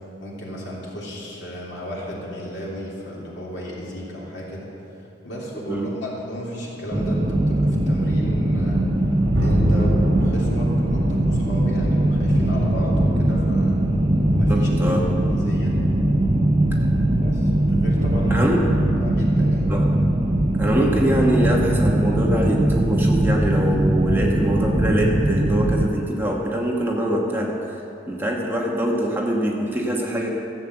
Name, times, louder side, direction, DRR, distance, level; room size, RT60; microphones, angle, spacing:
voice 1, 0.2-4.7 5.2-8.8 9.4-13.8 14.4-15.8 17.1-18.5 19.0-19.7, equal, 65° left, -5 dB, 3.2 m, -33 dB
sound 1, 6.9-25.9, right 1 dB, 25° right, 0.6 m, -21 dB
Thunder, 8.7-18.8, equal, 75° right, 1.8 m, -27 dB
voice 2, 14.5-15.0 18.3-18.6 19.7-19.8 20.6-27.8 28.1-30.3, right 1 dB, 10° right, -2 dB, 1.1 m, -23 dB
13.5 x 7.4 x 8.0 m, 2.9 s
head